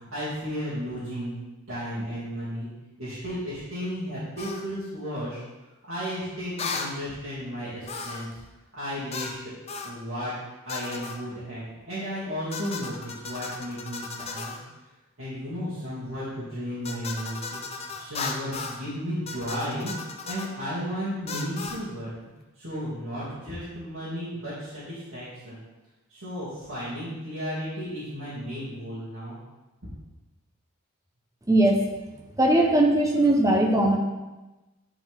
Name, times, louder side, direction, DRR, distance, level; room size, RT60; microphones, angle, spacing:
voice 1, 0.0-1.3 1.7-2.7 3.0-5.4 5.8-8.3 8.7-9.4 9.8-10.3 10.6-14.6 15.2-19.9 20.2-22.1 22.6-25.6 26.1-29.4, equal, 75° right, -12 dB, 2.5 m, -34 dB
sound 1, 4.4-4.6 6.6-6.9 7.9-8.3 9.1-9.4 9.7-10.0 10.7-11.2 12.5-14.6 16.8-18.8 19.3-20.5 21.3-21.8, left 4 dB, 30° left, 0.5 m, -35 dB
voice 2, 32.4-34.0, right 1 dB, 15° right, 1 dB, 0.8 m, -19 dB
9.9 x 4.4 x 3.6 m, 1.1 s
head